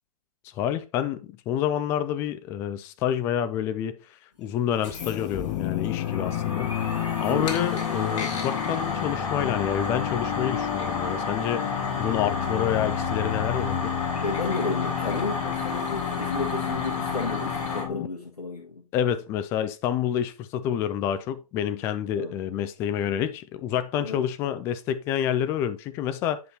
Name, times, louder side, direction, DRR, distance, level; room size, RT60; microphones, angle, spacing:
voice 1, 0.5-4.0 4.4-11.7 12.0-13.9 18.9-26.4, left 10 dB, 15° left, 0.3 m, -28 dB
sound 1, 4.7-17.8, left 2 dB, 50° left, 3.0 m, -32 dB
sound 2, 5.0-18.1, left 12 dB, 30° left, 0.7 m, -31 dB
voice 2, 14.1-18.8 22.2-22.4 24.0-24.2, left 3 dB, 75° left, 1.6 m, -32 dB
9.5 x 5.5 x 2.7 m
figure-of-eight pair, 125°, 20 cm